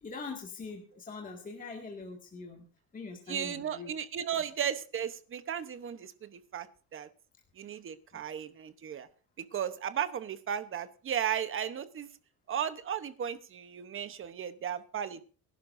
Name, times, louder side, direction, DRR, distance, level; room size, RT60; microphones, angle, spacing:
voice 1, 0.0-2.6 2.9-3.9 4.3-4.4, left 4 dB, 20° left, 1 dB, 2.0 m, -42 dB
voice 2, 3.3-6.7 6.9-7.1 7.6-9.1 9.5-12.1 12.5-15.2, right 9 dB, 30° right, 12 dB, 1.0 m, -35 dB
24.0 x 11.5 x 2.6 m, 0.37 s
cardioid pair, 170°, 40 cm